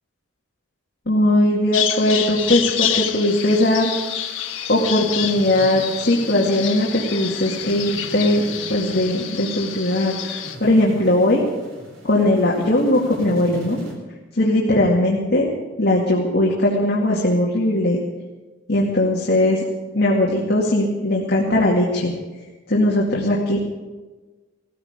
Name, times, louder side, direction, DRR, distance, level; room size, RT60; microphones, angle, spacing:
voice 1, 1.1-3.9 4.7-8.4 8.7-11.5 12.0-13.8 14.4-15.5 15.8-18.0 18.7-19.6 19.9-22.1 22.7-23.6, left 1 dB, 55° left, -4 dB, 2.3 m, -19 dB
Bird vocalization bird call bird song, 1.7-10.6, left 10 dB, 75° left, 1.4 m, -28 dB
sound 1, 3.3-13.9, equal, 75° right, 4.1 m, -40 dB
18.0 x 15.5 x 5.1 m, 1.2 s
head